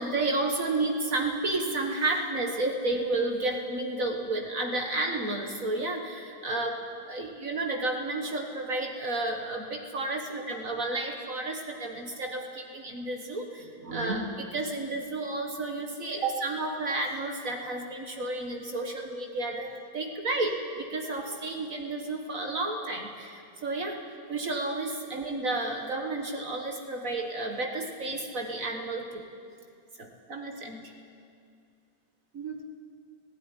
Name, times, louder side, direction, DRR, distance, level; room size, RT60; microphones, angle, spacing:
voice 1, 0.0-6.8 7.0-24.0 24.3-29.2 30.0-30.8 32.3-32.7, right 2 dB, 55° right, 2 dB, 1.8 m, -31 dB
17.0 x 16.0 x 9.8 m, 2.4 s
omnidirectional pair, 1.8 m